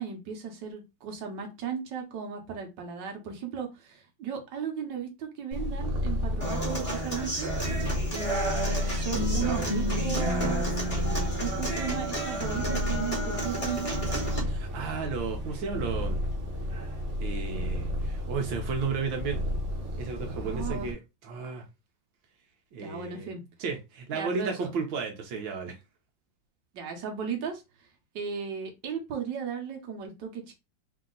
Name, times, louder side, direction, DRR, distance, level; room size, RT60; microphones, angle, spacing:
voice 1, 0.0-7.5 8.1-14.0 20.4-20.9 22.8-23.4 24.1-24.7 26.7-27.6 28.1-30.5, right 7 dB, 70° right, 1.7 m, -36 dB
Purr, 5.5-20.9, left 1 dB, 45° right, 1.2 m, -32 dB
Human voice / Acoustic guitar, 6.4-14.4, right 1 dB, 20° left, 1.6 m, -32 dB
voice 2, 14.5-16.2 17.2-19.4 20.0-21.6 22.7-23.3 23.6-25.8, right 5 dB, 85° right, 1.6 m, -33 dB
4.1 x 2.8 x 3.8 m
omnidirectional pair, 2.0 m